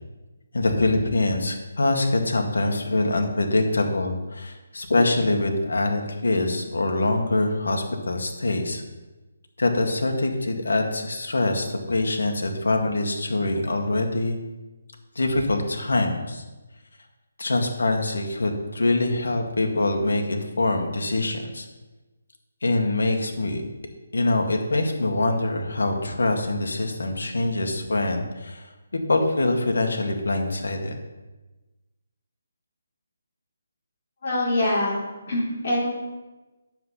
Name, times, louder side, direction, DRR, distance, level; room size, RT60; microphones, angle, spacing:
voice 1, 0.5-8.8 9.6-14.4 15.2-16.4 17.4-21.7 22.6-23.6 24.1-28.7 29.1-31.0, left 2 dB, 85° left, 3 dB, 2.0 m, -24 dB
voice 2, 34.2-35.0 35.3-35.9, left 1 dB, 40° left, -5 dB, 3.9 m, -24 dB
9.2 x 7.5 x 5.7 m, 1.1 s
hypercardioid pair, 175°, 0 cm